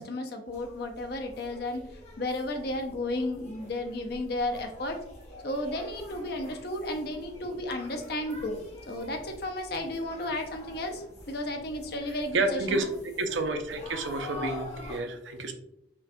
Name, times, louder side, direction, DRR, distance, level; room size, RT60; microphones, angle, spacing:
voice 1, 0.0-1.8 2.2-5.0 5.4-8.6 8.9-12.8, left 1 dB, 55° left, 4 dB, 0.6 m, -33 dB
sound 1, 0.5-15.0, left 1 dB, 35° left, 0.9 m, -46 dB
voice 2, 12.3-15.5, right 2 dB, 75° right, 6 dB, 0.5 m, -30 dB
5.1 x 2.4 x 2.6 m, 0.77 s
head